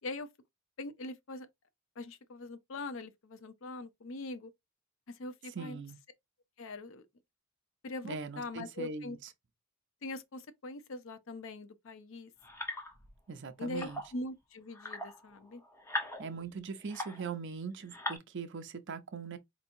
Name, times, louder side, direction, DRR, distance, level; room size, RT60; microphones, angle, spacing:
voice 1, 0.8-1.5 2.0-4.5 5.2-5.8 6.6-7.1 7.8-9.2 10.0-12.3 13.6-15.6, left 2 dB, 65° left, 0.6 m, -42 dB
voice 2, 5.5-6.0 8.0-9.3 13.3-14.0 16.2-19.4, right 5 dB, 60° right, 0.6 m, -41 dB
sound 1, 12.4-13.2 13.7-14.2 14.7-17.4 17.8-18.2, left 1 dB, 15° left, 0.9 m, -41 dB
4.5 x 3.0 x 2.6 m
head